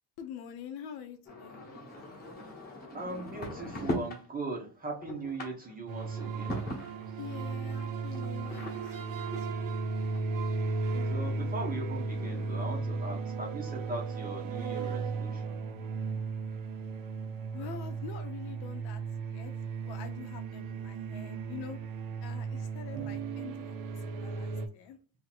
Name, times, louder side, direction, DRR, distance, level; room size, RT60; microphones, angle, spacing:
voice 1, 0.2-1.6 7.2-9.8 17.5-19.5 19.8-21.8 22.2-23.8 24.0-25.0, left 8 dB, 60° left, 7 dB, 0.7 m, -45 dB
sound 1, 1.3-4.3 4.7-7.4 8.1-10.7 11.3-11.4 11.6-11.7 11.9-12.8, left 1 dB, 20° left, 1.1 m, -41 dB
voice 2, 2.9-6.6 11.1-15.6, right 2 dB, 20° right, 0 dB, 0.8 m, -39 dB
sound 2, 5.9-24.7, right 4 dB, 50° right, 0.6 m, -35 dB
2.9 x 2.8 x 4.1 m, 0.36 s
cardioid pair, 160°, 44 cm